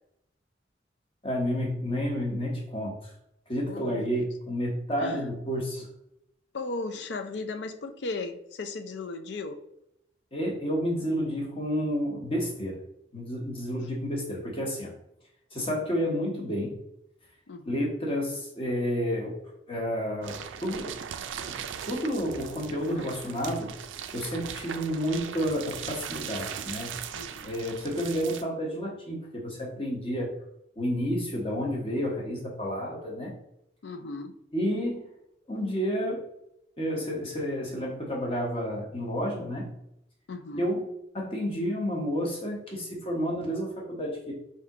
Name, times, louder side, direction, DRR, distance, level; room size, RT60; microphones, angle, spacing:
voice 1, 1.2-3.1 3.5-5.9 10.3-12.8 13.1-14.9 15.5-16.8 17.6-19.4 19.7-21.0 21.5-21.6 21.9-23.7 24.1-27.0 27.4-30.3 30.8-33.3 34.5-35.1 35.5-36.2 36.8-39.7 40.5-40.9 41.1-44.3, equal, 30° left, -2 dB, 1.0 m, -30 dB
voice 2, 3.7-4.3 5.0-5.3 6.5-9.6 17.5-17.8 27.1-27.5 33.8-34.3 40.3-40.7, left 3 dB, 65° left, 8 dB, 0.4 m, -36 dB
sound 1, 20.2-28.4, right 8 dB, 90° right, 0.4 m, -39 dB
3.5 x 2.7 x 4.7 m, 0.79 s
head